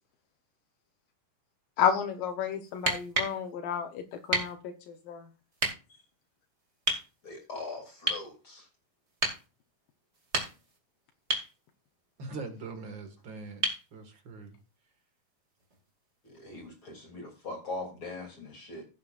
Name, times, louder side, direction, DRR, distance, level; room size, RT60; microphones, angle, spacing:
voice 1, 1.8-4.0 4.3-4.6 5.1-5.2, left 8 dB, 80° left, 3 dB, 2.6 m, -30 dB
sound 1, 2.7-3.4 4.3-4.5 5.6-5.7 6.9-7.1 8.1-8.3 9.2-9.4 10.1-10.8 11.3-11.5 13.6-13.9 15.7-15.8, right 2 dB, 25° right, 2.0 m, -30 dB
voice 2, 7.2-8.6 16.2-18.8, left 3 dB, 40° left, 2 dB, 3.4 m, -41 dB
voice 3, 12.2-14.5, right 3 dB, 40° right, 6 dB, 2.1 m, -42 dB
16.0 x 8.3 x 2.5 m, 0.32 s
omnidirectional pair, 3.9 m